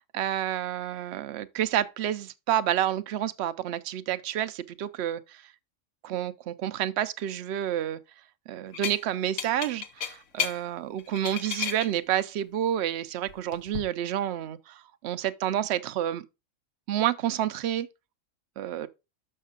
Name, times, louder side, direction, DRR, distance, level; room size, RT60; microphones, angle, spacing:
voice 1, 0.1-5.2 6.0-8.0 8.5-16.2 16.9-17.9 18.6-18.9, right 11 dB, 65° right, 0.8 m, -29 dB
sound 1, 8.7-9.0 9.4-10.6 11.0-11.9 13.3-13.8, left 7 dB, 85° left, 1.2 m, -32 dB
6.6 x 6.3 x 3.7 m
omnidirectional pair, 1.3 m